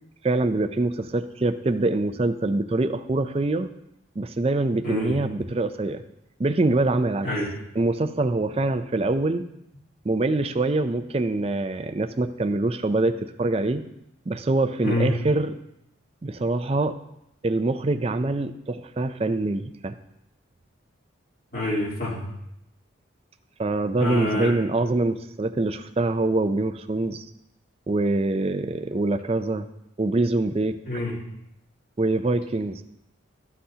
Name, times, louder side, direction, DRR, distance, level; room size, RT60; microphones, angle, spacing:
voice 1, 0.2-3.7 4.2-6.0 6.4-7.3 7.8-9.4 10.0-13.8 14.3-15.5 16.2-17.0 17.4-19.9 23.6-27.2 27.9-29.7 30.0-30.8 32.0-32.8, right 2 dB, 30° right, 9 dB, 0.4 m, -24 dB
voice 2, 4.8-5.1 7.2-7.5 14.8-15.1 21.5-22.2 24.0-24.5 30.8-31.1, left 1 dB, 45° left, -6 dB, 3.0 m, -27 dB
13.0 x 7.8 x 2.8 m, 0.82 s
head